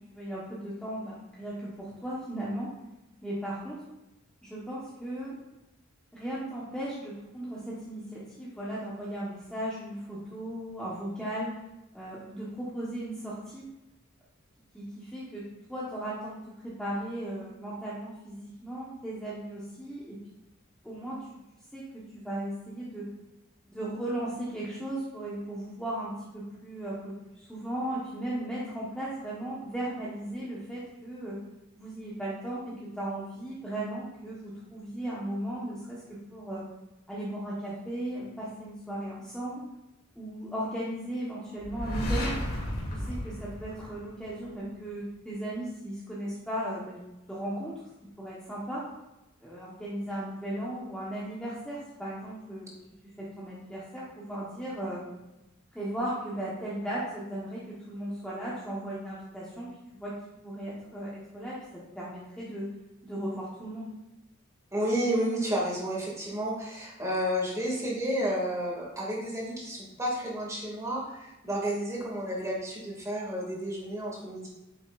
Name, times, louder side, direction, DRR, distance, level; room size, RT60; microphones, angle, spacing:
voice 1, 0.1-2.7 3.2-3.8 4.4-5.4 6.1-11.6 11.9-13.7 14.7-16.4 16.6-20.2 20.8-21.2 21.7-23.1 23.7-31.4 31.8-36.6 37.1-39.7 40.1-42.4 42.9-47.0 47.3-47.8 48.2-48.8 49.4-52.7 53.2-55.1 55.7-60.2 60.4-61.6 61.9-62.7 63.0-63.9, right 1 dB, 5° left, -8 dB, 1.3 m, -36 dB
sound 1, 41.6-44.5, left 1 dB, 50° left, 2.8 m, -33 dB
voice 2, 64.7-74.5, equal, 15° right, -4 dB, 2.4 m, -31 dB
9.3 x 7.3 x 2.6 m, 0.98 s
head